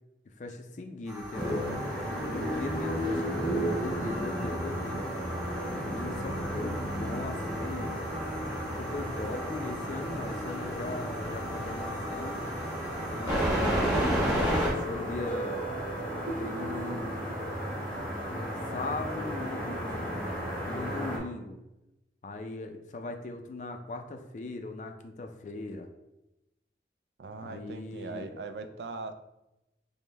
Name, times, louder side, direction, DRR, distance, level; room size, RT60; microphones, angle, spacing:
voice 1, 0.3-1.6 2.3-5.1 5.8-8.0 8.7-12.4 13.1-15.6 16.1-17.2 18.3-20.3 20.6-21.6 22.2-25.9 27.4-28.3, left 2 dB, 45° left, 5 dB, 0.4 m, -39 dB
sound 1, 1.1-14.7, right 1 dB, 20° right, 1.0 m, -35 dB
sound 2, 1.3-21.2, equal, 10° left, 0.9 m, -34 dB
sound 3, 13.3-18.0, right 1 dB, 50° right, 0.9 m, -39 dB
voice 2, 27.2-29.1, right 3 dB, 75° right, 8 dB, 0.3 m, -40 dB
5.1 x 2.1 x 3.2 m, 0.93 s
head